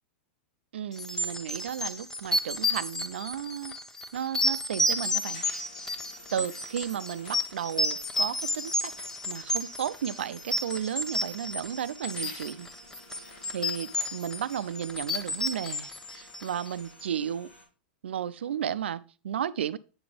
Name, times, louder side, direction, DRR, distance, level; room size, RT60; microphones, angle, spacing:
voice 1, 0.7-3.7 4.1-5.4 5.8-5.9 6.3-8.9 9.2-12.7 13.5-17.5 18.0-19.8, right 9 dB, 90° right, 0.5 m, -34 dB
sound 1, 1.0-16.8, left 1 dB, 10° left, 0.7 m, -31 dB
machine hydraulic metal cutter, 5.0-17.7, left 2 dB, 85° left, 3.0 m, -53 dB
8.7 x 4.1 x 5.0 m
hypercardioid pair, 130°, 6 cm